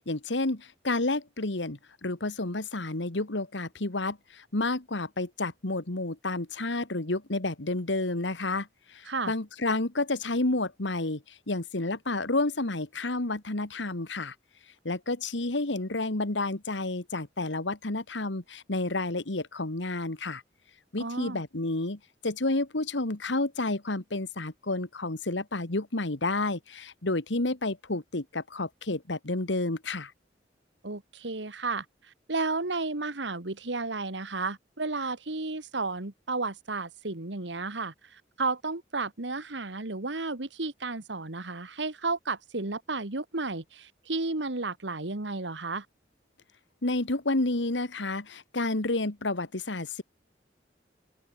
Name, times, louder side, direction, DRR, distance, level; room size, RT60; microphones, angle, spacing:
voice 1, 0.0-8.7 8.9-14.3 14.8-20.4 20.9-30.1 46.8-50.0, left 2 dB, 85° left, 2.0 m, -30 dB
voice 2, 21.0-21.4 30.8-31.9 32.3-45.9, right 3 dB, 80° right, 1.9 m, -33 dB
open air
head